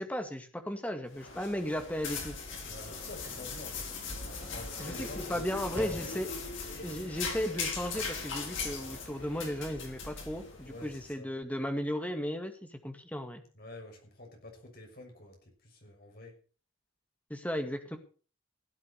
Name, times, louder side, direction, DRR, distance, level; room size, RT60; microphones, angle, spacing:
voice 1, 0.0-2.4 4.8-6.3 6.8-13.4 17.3-18.0, equal, 5° left, 6 dB, 2.0 m, -35 dB
sound 1, 1.1-11.1, left 4 dB, 70° left, 5.1 m, -39 dB
Sliding door / Slam, 2.2-6.8, right 1 dB, 10° right, 1.7 m, -50 dB
voice 2, 2.6-6.2 10.7-11.3 13.5-16.4, left 2 dB, 45° left, 2 dB, 6.4 m, -49 dB
17.0 x 8.4 x 6.7 m, 0.39 s
head